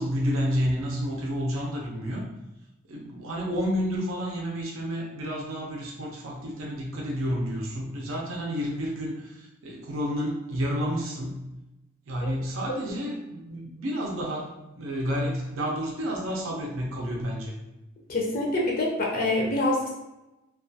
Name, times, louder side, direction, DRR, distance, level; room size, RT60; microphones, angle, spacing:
voice 1, 0.0-2.3 2.9-11.5 12.1-17.5, equal, 75° right, -2 dB, 0.5 m, -30 dB
voice 2, 18.1-19.9, left 2 dB, 45° left, -2 dB, 0.4 m, -25 dB
2.3 x 2.2 x 2.6 m, 0.98 s
head